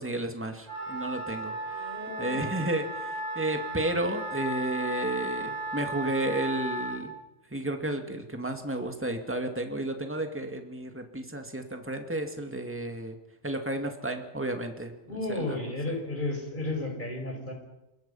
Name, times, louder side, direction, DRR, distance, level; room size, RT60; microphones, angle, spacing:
voice 1, 0.0-7.2 7.5-13.2 13.4-15.6, right 1 dB, 10° right, 5 dB, 2.3 m, -32 dB
Wind instrument woodwind instrument, 0.6-7.0, right 1 dB, 75° left, 6.9 m, -35 dB
voice 2, 1.7-2.4 15.1-17.5, left 2 dB, 40° left, 2 dB, 6.2 m, -33 dB
27.0 x 22.5 x 5.7 m, 0.98 s
omnidirectional pair, 1.3 m